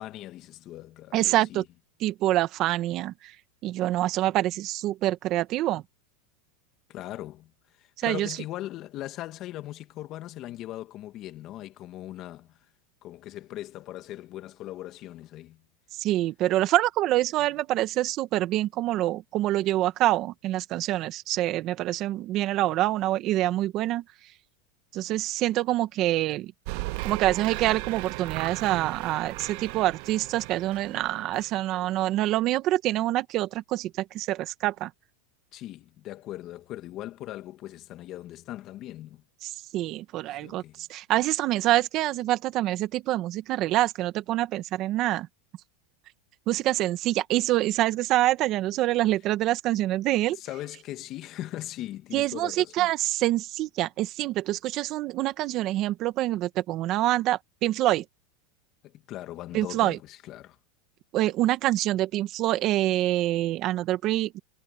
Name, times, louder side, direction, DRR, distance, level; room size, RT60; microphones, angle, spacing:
voice 1, 0.0-1.6 6.9-7.5 7.8-12.6 13.0-15.6 35.5-39.2 40.3-40.8 50.3-52.9 58.8-60.6, left 14 dB, 40° left, 2.1 m, -39 dB
voice 2, 1.1-1.6 2.0-3.3 3.6-5.8 8.0-8.3 16.0-24.0 24.9-26.5 27.0-34.9 39.4-45.3 46.5-50.4 52.1-58.0 59.5-60.0 61.1-64.4, right 15 dB, 40° right, 1.5 m, -26 dB
sound 1, 26.7-32.1, right 25 dB, 60° right, 0.6 m, -36 dB
supercardioid pair, 135°, 0 cm